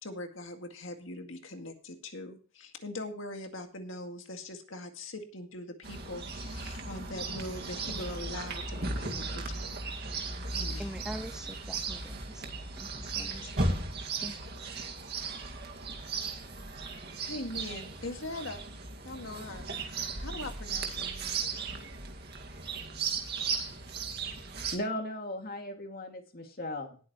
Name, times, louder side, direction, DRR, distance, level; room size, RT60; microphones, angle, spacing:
voice 1, 0.0-9.8 10.5-10.9 13.4-13.5 17.2-18.6 19.0-19.6 20.2-21.4, left 2 dB, 65° left, 5 dB, 2.1 m, -41 dB
Chirp tweet, 5.8-24.8, right 4 dB, 50° right, 2.0 m, -36 dB
voice 2, 10.8-12.5 12.8-13.6 14.1-14.4, equal, 5° right, 11 dB, 0.4 m, -44 dB
voice 3, 24.7-27.0, left 1 dB, 45° left, 4 dB, 2.4 m, -37 dB
19.0 x 8.4 x 3.1 m, 0.38 s
head